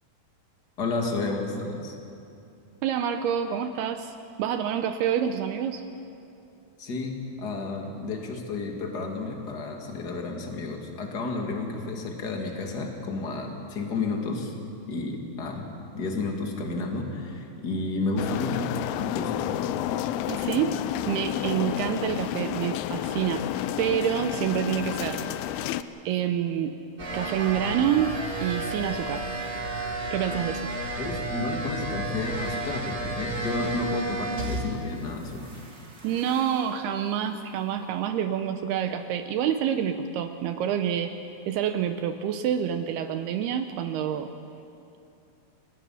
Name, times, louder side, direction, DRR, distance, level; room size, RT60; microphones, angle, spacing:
voice 1, 0.8-1.9 6.8-14.5 14.9-15.7 15.9-19.6 31.0-35.4, left 3 dB, 35° left, 1 dB, 1.9 m, -31 dB
voice 2, 2.8-5.8 20.3-20.8 21.1-23.5 23.8-25.2 26.1-26.8 27.1-29.3 30.1-30.6 36.0-41.1 41.5-44.3, right 9 dB, 80° right, 8 dB, 2.6 m, -27 dB
sound 1, 18.2-25.8, left 12 dB, 80° left, 2.4 m, -30 dB
sound 2, 27.0-34.9 35.2-36.7, right 2 dB, 30° right, 2.3 m, -33 dB
28.5 x 19.0 x 5.7 m, 2.6 s
omnidirectional pair, 4.9 m